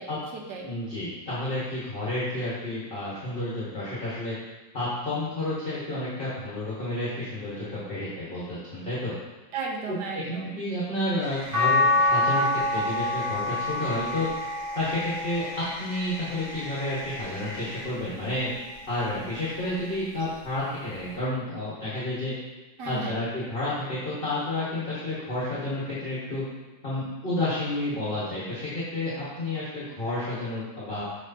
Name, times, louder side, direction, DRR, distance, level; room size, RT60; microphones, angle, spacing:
voice 1, 0.0-0.7 9.5-10.6 22.8-23.2, right 4 dB, 65° right, -1 dB, 1.4 m, -35 dB
voice 2, 0.6-4.3 4.7-9.1 9.9-10.2 10.6-14.3 14.7-18.5 18.9-22.3 22.8-26.4 26.8-31.0, left 1 dB, 30° left, -9 dB, 1.4 m, -30 dB
sound 1, 11.2-20.0, equal, 90° right, 2.1 m, -43 dB
sound 2, 11.5-17.8 18.4-19.7 21.2-21.3, left 2 dB, 30° right, 1.7 m, -28 dB
6.3 x 6.1 x 2.7 m, 1.2 s
omnidirectional pair, 2.0 m